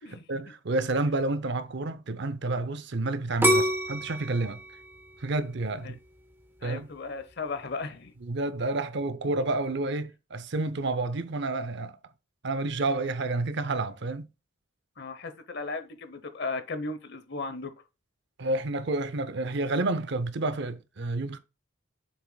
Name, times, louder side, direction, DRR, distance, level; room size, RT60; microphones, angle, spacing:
voice 1, 0.3-4.6 5.2-6.0 6.6-6.9 8.2-11.9 12.4-14.3 18.4-21.4, right 2 dB, 60° right, 0.6 m, -29 dB
sound 1, 3.4-6.3 6.8-7.3, equal, 10° right, 0.7 m, -27 dB
voice 2, 6.6-8.1 15.0-17.7, left 3 dB, 55° left, 0.9 m, -36 dB
7.3 x 6.0 x 2.3 m
head